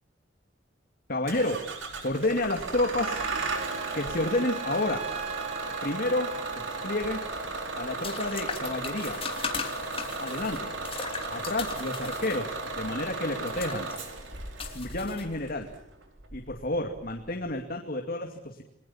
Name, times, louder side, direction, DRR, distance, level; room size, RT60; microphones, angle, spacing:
voice 1, 1.1-1.7 2.0-3.2 3.9-5.0 5.8-7.2 7.7-9.2 10.2-10.7 11.3-13.9 14.7-15.7 16.3-18.6, left 2 dB, 50° left, 3 dB, 2.5 m, -30 dB
Bus / Engine starting, 1.3-17.5, right 3 dB, 90° right, 4.7 m, -36 dB
Trumpet, 3.0-7.3, right 6 dB, 35° right, 2.1 m, -40 dB
sound 1, 6.9-15.7, left 6 dB, 30° left, 3.2 m, -39 dB
29.5 x 21.0 x 7.3 m, 0.78 s
head